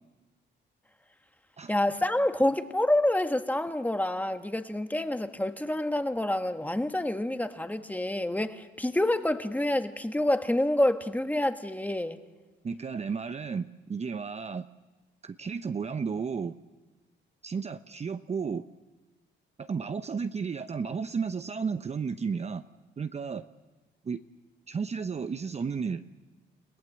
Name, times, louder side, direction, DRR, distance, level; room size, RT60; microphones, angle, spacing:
voice 1, 1.7-12.2, left 1 dB, 10° left, 1.4 m, -27 dB
voice 2, 12.6-14.7 15.2-16.6 17.4-18.6 19.6-22.6 23.0-23.4 24.0-24.2 24.7-26.0, right 5 dB, 35° right, 0.8 m, -33 dB
29.5 x 17.0 x 7.7 m
cardioid pair, 90°, 20 cm